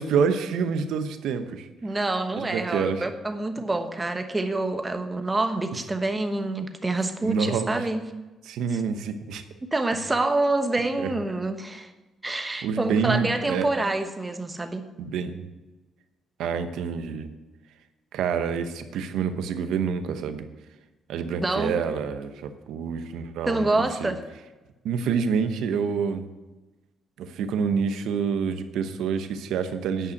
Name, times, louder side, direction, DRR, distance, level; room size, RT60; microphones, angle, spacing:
voice 1, 0.0-1.7 2.4-3.0 7.2-7.8 8.5-9.4 11.0-11.1 12.6-13.7 15.0-15.4 16.4-17.3 18.1-20.5 21.1-23.7 24.0-24.1 24.8-26.2 27.2-30.1, right 6 dB, 85° right, 9 dB, 0.9 m, -27 dB
voice 2, 1.8-8.0 8.7-8.8 9.7-11.9 12.2-14.8 21.4-21.7 23.5-24.2, right 2 dB, 20° right, 7 dB, 1.1 m, -27 dB
9.8 x 5.6 x 8.0 m, 1.1 s
cardioid pair, 90°, 0 cm